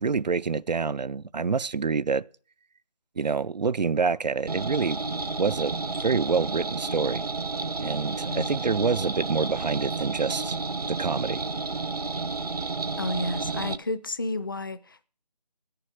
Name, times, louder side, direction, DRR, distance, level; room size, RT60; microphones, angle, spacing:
voice 1, 0.0-2.2 3.2-5.1 5.4-5.8 6.0-7.2 7.8-10.6 10.9-11.5, right 5 dB, 90° right, 0.5 m, -27 dB
sound 1, 4.5-13.8, right 3 dB, 65° right, 0.8 m, -31 dB
voice 2, 13.0-15.0, left 2 dB, 30° left, 0.5 m, -31 dB
9.9 x 6.8 x 7.3 m
figure-of-eight pair, 160°, 21 cm